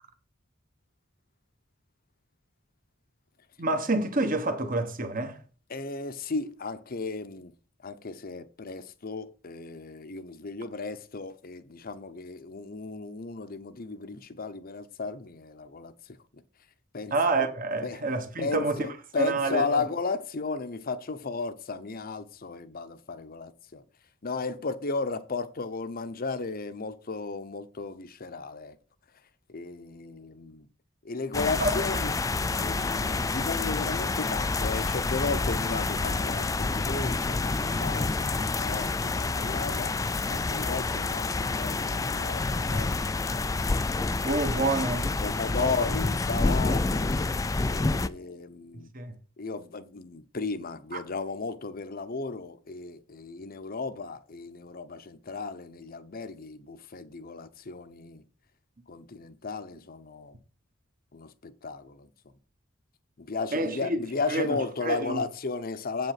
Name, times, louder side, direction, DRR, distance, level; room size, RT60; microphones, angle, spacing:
voice 1, 3.6-5.4 17.1-18.9 19.2-19.8 31.6-32.0 44.2-45.1 45.5-45.7 48.9-49.1 63.5-64.0 64.3-65.2, right 2 dB, 45° right, 1.3 m, -28 dB
voice 2, 5.7-7.5 7.8-16.2 16.9-17.1 17.8-18.0 18.4-23.8 24.2-28.8 29.5-30.7 31.0-32.1 32.5-39.9 40.3-43.4 45.2-47.3 47.7-48.9 49.4-58.2 58.9-60.3 61.1-62.1 63.2-66.1, left 4 dB, 50° left, 0.8 m, -35 dB
sound 1, 31.3-48.1, left 3 dB, 15° left, 0.3 m, -28 dB
8.0 x 5.4 x 5.9 m
head